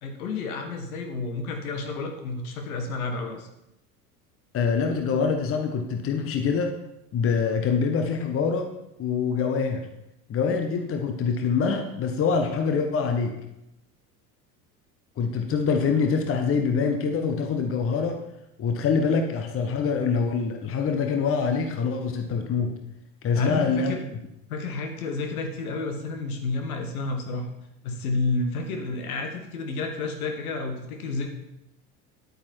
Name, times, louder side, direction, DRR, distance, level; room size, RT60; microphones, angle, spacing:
voice 1, 0.0-3.5 23.3-24.1 24.5-27.5 27.8-31.3, left 3 dB, 65° left, 4 dB, 1.8 m, -30 dB
voice 2, 4.5-6.7 7.1-8.7 9.0-9.8 10.3-13.3 15.2-18.2 18.6-22.7 23.2-24.0, left 5 dB, 30° left, 5 dB, 1.1 m, -25 dB
10.5 x 8.8 x 4.5 m, 0.85 s
figure-of-eight pair, 70°, 47 cm